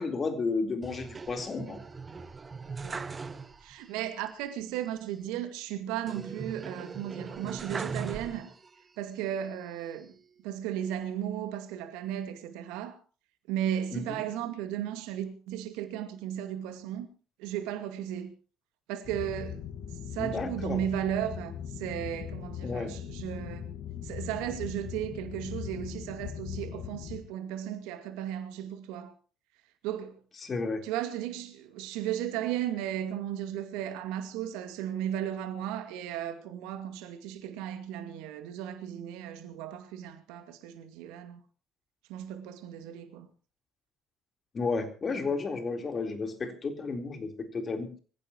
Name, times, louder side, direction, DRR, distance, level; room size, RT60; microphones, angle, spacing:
voice 1, 0.0-1.8 13.9-14.2 20.1-20.8 22.6-22.9 30.4-30.8 44.5-47.9, left 4 dB, 35° left, 4.0 m, -32 dB
sound 1, 0.8-3.9 4.2-4.3 6.1-8.8 9.3-10.2, right 4 dB, 30° right, 1.8 m, -40 dB
voice 2, 3.6-8.5 9.0-10.1 10.4-13.0 13.5-17.1 17.4-18.3 18.9-19.6 20.1-23.7 24.0-29.1 29.8-30.2 30.8-41.4 42.1-43.3, right 11 dB, 70° right, 2.2 m, -35 dB
sound 2, 19.1-27.2, left 8 dB, 55° left, 1.7 m, -40 dB
24.5 x 16.0 x 3.0 m
hypercardioid pair, 60°, 0 cm